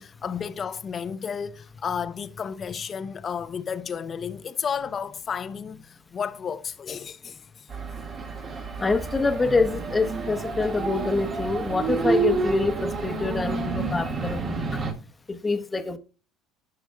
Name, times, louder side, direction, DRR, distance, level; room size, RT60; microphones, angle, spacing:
voice 1, 0.0-7.7, left 7 dB, 40° left, 0.7 m, -32 dB
sound 1, 7.7-14.9, right 4 dB, 45° right, 1.8 m, -29 dB
voice 2, 8.8-14.8 15.3-16.0, left 3 dB, 20° left, 1.0 m, -26 dB
14.0 x 5.8 x 2.3 m
hypercardioid pair, 75°, 0 cm